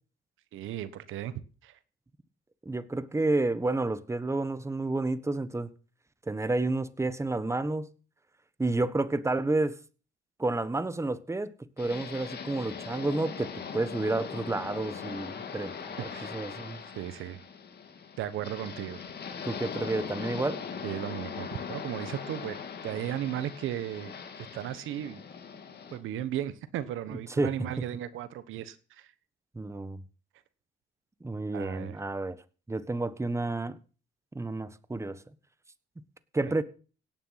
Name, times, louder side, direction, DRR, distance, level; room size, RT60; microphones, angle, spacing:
voice 1, 0.5-1.3 1.6-1.8 16.0-16.3 16.9-17.4 18.2-19.0 20.8-22.6 22.8-24.1 24.5-25.2 25.9-29.1 31.5-32.0 36.5-36.6, right 11 dB, 85° right, 14 dB, 1.2 m, -35 dB
voice 2, 2.6-5.7 6.3-7.9 8.6-9.8 10.4-11.5 11.8-16.8 19.4-20.6 27.4-27.5 29.5-30.0 31.2-32.4 32.7-33.8 34.3-35.2 36.3-36.6, right 2 dB, 15° right, 14 dB, 1.3 m, -30 dB
sound 1, 11.8-26.0, left 6 dB, 55° left, 3.1 m, -40 dB
17.5 x 9.6 x 5.8 m, 0.38 s
cardioid pair, 90°, 20 cm